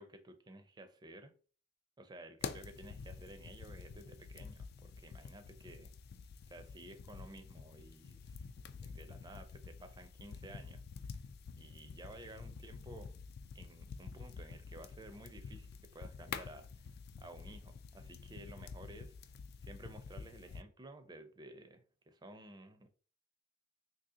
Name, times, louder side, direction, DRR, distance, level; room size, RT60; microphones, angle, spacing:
voice 1, 0.0-1.3 2.0-5.9 6.5-11.2 11.6-13.1 13.5-16.9 17.2-19.1 19.6-22.9, right 1 dB, 20° right, 0.5 m, -54 dB
sound 1, 2.4-20.6, left 5 dB, 50° left, 0.3 m, -48 dB
2.8 x 2.7 x 3.6 m
head